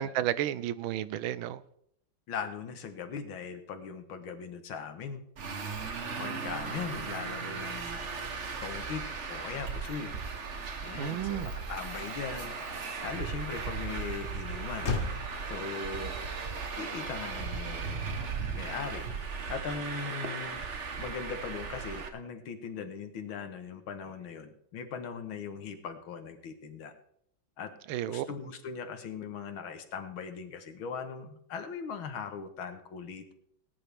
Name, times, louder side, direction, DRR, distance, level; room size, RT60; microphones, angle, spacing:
voice 1, 0.0-1.6 11.0-11.5 27.9-28.3, right 12 dB, 85° right, 1.4 m, -32 dB
voice 2, 2.3-5.2 6.2-8.0 8.6-9.0 9.3-10.1 10.8-12.5 13.0-14.9 15.5-16.2 16.8-18.2 18.5-20.7 21.0-26.9 27.6-27.7 28.1-33.3, left 6 dB, 80° left, 2.1 m, -39 dB
Traffic noise roadway noise, 5.4-22.1, right 5 dB, 40° right, 1.3 m, -37 dB
Motor vehicle (road), 14.8-19.4, left 4 dB, 40° left, 1.4 m, -42 dB
19.5 x 9.9 x 3.5 m
omnidirectional pair, 2.2 m